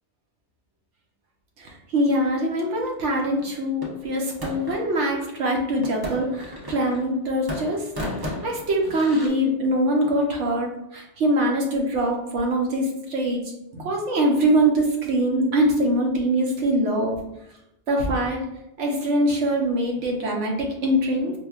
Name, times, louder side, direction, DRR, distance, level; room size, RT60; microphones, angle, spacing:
voice 1, 1.6-7.8 8.2-13.4 13.7-17.1 17.9-18.4 18.8-21.3, right 1 dB, 80° right, 0 dB, 1.1 m, -23 dB
sound 1, 3.8-4.9 5.8-7.2 7.5-9.3, left 1 dB, 30° right, 0.5 m, -34 dB
5.0 x 2.2 x 2.3 m, 0.85 s
omnidirectional pair, 1.2 m